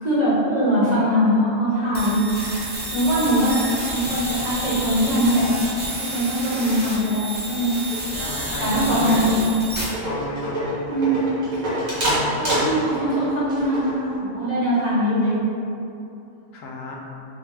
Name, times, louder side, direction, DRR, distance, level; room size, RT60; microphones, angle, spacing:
voice 1, 0.0-2.2 2.9-3.6 3.9-5.5 6.0-7.8 8.6-9.4 10.9-11.2 12.4-15.4, equal, 35° right, -10 dB, 0.9 m, -21 dB
sound 1, 1.9-9.8, right 1 dB, 15° right, 0.4 m, -30 dB
sound 2, 2.6-5.9, right 2 dB, 70° right, 1.1 m, -43 dB
sound 3, 7.9-8.4 8.7-9.0 9.4-9.5 9.8-14.2, equal, 85° right, 1.6 m, -26 dB
voice 2, 8.1-9.3 10.1-10.8 16.5-17.0, left 1 dB, 80° left, -1 dB, 1.0 m, -32 dB
3.9 x 2.2 x 3.3 m, 2.7 s
omnidirectional pair, 1.4 m